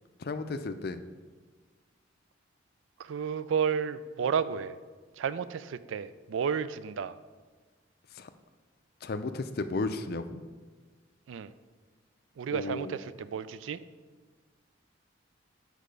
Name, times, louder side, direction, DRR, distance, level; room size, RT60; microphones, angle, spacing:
voice 1, 0.2-1.0 8.1-8.3 9.0-10.4 12.5-12.9, left 3 dB, 50° left, 10 dB, 0.4 m, -34 dB
voice 2, 3.0-4.8 5.2-7.2 11.3-11.5 12.4-13.8, right 7 dB, 75° right, 14 dB, 0.3 m, -32 dB
6.6 x 4.8 x 5.2 m, 1.4 s
head